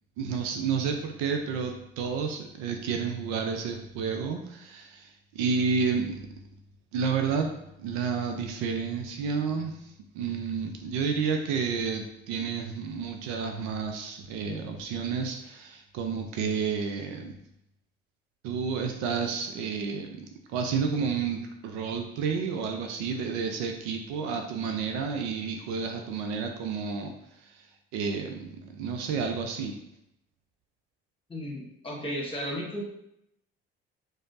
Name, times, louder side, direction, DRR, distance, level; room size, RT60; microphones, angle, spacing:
voice 1, 0.2-6.3 6.9-17.4 18.4-27.1 27.4-27.7 27.9-29.8, right 5 dB, 60° right, 4 dB, 0.5 m, -31 dB
voice 2, 31.3-32.8, equal, 15° left, -2 dB, 1.2 m, -34 dB
4.9 x 2.0 x 2.6 m, 0.80 s
figure-of-eight pair, 55°, 32 cm